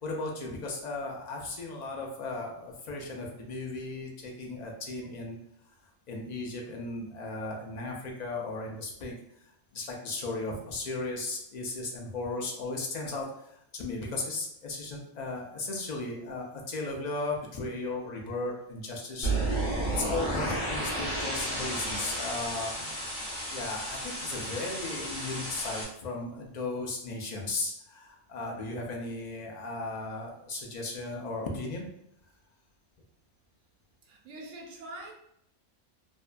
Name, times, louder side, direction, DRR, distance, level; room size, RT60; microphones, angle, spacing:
voice 1, 0.0-5.4 6.1-9.1 9.7-19.3 19.9-22.9 23.5-31.9, left 2 dB, 70° left, 0 dB, 0.4 m, -36 dB
sound 1, 19.2-25.8, right 1 dB, 40° left, 0.9 m, -32 dB
voice 2, 34.1-35.1, right 1 dB, 80° right, 1 dB, 1.0 m, -44 dB
2.6 x 2.2 x 2.4 m, 0.75 s
omnidirectional pair, 1.3 m